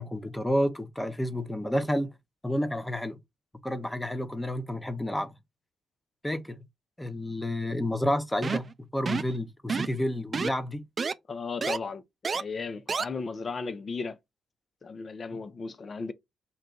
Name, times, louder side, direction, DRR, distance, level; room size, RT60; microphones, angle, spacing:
voice 1, 0.0-2.1 2.4-3.2 3.6-5.3 6.2-6.6 7.0-10.8, left 1 dB, 10° left, 0.7 m, -30 dB
sound 1, 8.4-8.7 9.1-9.3 9.7-10.0 10.3-10.5 11.0-11.1 11.6-11.8 12.2-12.4 12.9-13.0, right 5 dB, 45° right, 0.3 m, -29 dB
voice 2, 11.3-12.0 12.3-14.2 14.8-16.1, left 4 dB, 45° left, 0.6 m, -35 dB
4.0 x 2.2 x 3.7 m
supercardioid pair, 55°, 0 cm